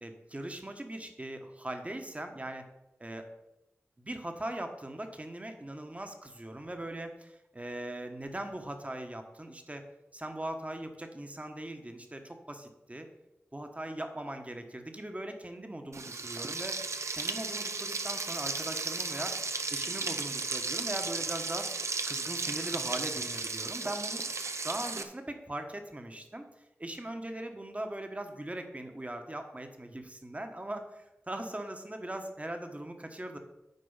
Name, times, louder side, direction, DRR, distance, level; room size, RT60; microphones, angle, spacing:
voice 1, 0.0-2.7 3.0-3.3 4.0-9.8 10.1-13.1 13.5-16.8 17.1-19.4 19.7-21.7 22.1-24.2 24.6-26.5 26.8-33.4, right 1 dB, 25° right, 5 dB, 1.3 m, -40 dB
Frying (food), 15.9-25.0, right 3 dB, 70° right, 0.7 m, -35 dB
9.4 x 4.5 x 5.6 m, 0.96 s
cardioid pair, 45°, 5 cm